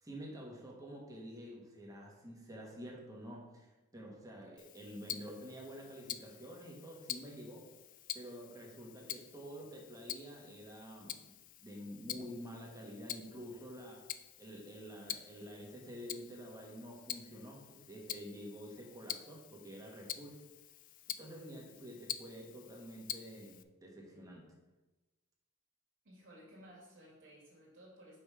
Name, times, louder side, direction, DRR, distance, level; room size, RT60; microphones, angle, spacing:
voice 1, 0.0-7.7 8.1-11.3 11.6-14.1 14.4-20.4 21.2-24.4, equal, 15° right, -2 dB, 1.5 m, -49 dB
Tick-tock, 4.6-23.6, left 11 dB, 40° left, 0.3 m, -47 dB
voice 2, 26.0-28.2, equal, 65° right, -5 dB, 2.3 m, -57 dB
5.6 x 5.2 x 4.8 m, 1.1 s
head